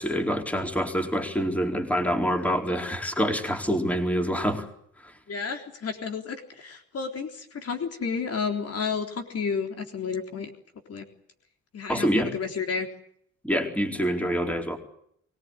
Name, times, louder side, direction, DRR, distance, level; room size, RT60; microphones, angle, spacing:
voice 1, 0.0-4.7 5.0-5.1 11.9-12.3 13.4-14.8, equal, 5° left, 5 dB, 4.2 m, -26 dB
voice 2, 5.3-10.5 10.9-11.1 11.7-12.9, left 5 dB, 55° left, 5 dB, 3.8 m, -31 dB
24.0 x 19.0 x 9.9 m, 0.69 s
cardioid pair, 90°, 30 cm